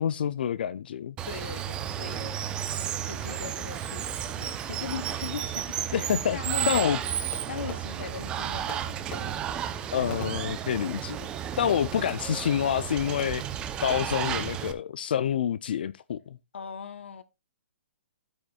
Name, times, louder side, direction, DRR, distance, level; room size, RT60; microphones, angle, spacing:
voice 1, 0.0-1.2 5.9-6.4 6.7-7.0 9.9-11.3 11.6-13.4 13.8-16.4, left 9 dB, 55° left, 0.4 m, -27 dB
Water, 1.2-14.7, right 10 dB, 15° right, 0.6 m, -33 dB
voice 2, 1.3-2.3 2.6-7.0 7.5-9.4 16.5-17.2, left 6 dB, 75° left, 0.9 m, -40 dB
Fireworks, 7.3-8.3 8.7-11.1 11.7-12.6 13.2-13.6 13.9-14.4, left 5 dB, 20° left, 1.1 m, -46 dB
11.5 x 8.6 x 2.3 m
hypercardioid pair, 160°, 6 cm